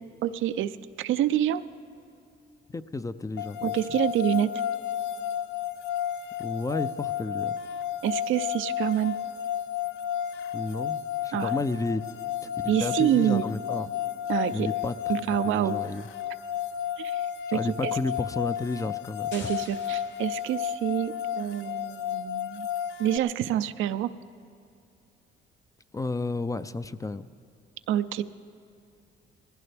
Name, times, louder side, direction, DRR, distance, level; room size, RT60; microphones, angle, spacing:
voice 1, 0.2-1.6 3.6-4.5 8.0-9.1 11.3-11.5 12.7-13.5 14.3-14.7 15.1-15.8 17.0-17.2 17.5-17.9 19.3-22.7 23.0-24.1 27.9-28.2, right 11 dB, 80° right, 12 dB, 0.5 m, -27 dB
voice 2, 2.7-3.7 6.4-7.5 10.5-12.3 12.6-13.9 14.5-16.1 17.5-19.5 25.9-27.3, left 3 dB, 15° left, 13 dB, 0.4 m, -32 dB
sound 1, 3.4-23.2, left 10 dB, 85° left, 0.6 m, -32 dB
sound 2, 19.3-21.1, left 4 dB, 65° left, 1.5 m, -48 dB
20.5 x 15.5 x 3.4 m, 2.6 s
cardioid pair, 90°, 20 cm